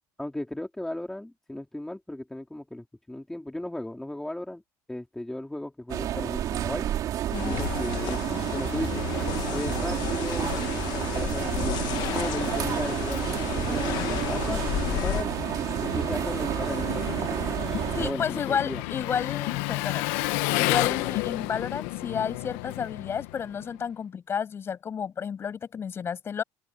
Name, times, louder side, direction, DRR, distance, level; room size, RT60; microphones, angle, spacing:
voice 1, 0.2-4.6 4.9-6.9 7.4-9.1 9.5-11.8 12.1-14.6 15.0-15.3 15.8-17.4 18.0-18.8, left 1 dB, 5° left, 3.4 m, -35 dB
sound 1, 5.9-18.1, right 11 dB, 50° right, 3.5 m, -30 dB
sound 2, 7.3-15.2, left 15 dB, 60° left, 1.6 m, -33 dB
voice 2, 7.3-7.7 17.9-20.1 20.6-26.4, left 7 dB, 30° left, 7.8 m, -31 dB
Engine, 10.3-23.9, left 20 dB, 85° left, 1.3 m, -33 dB
open air
cardioid pair, 135°, 8 cm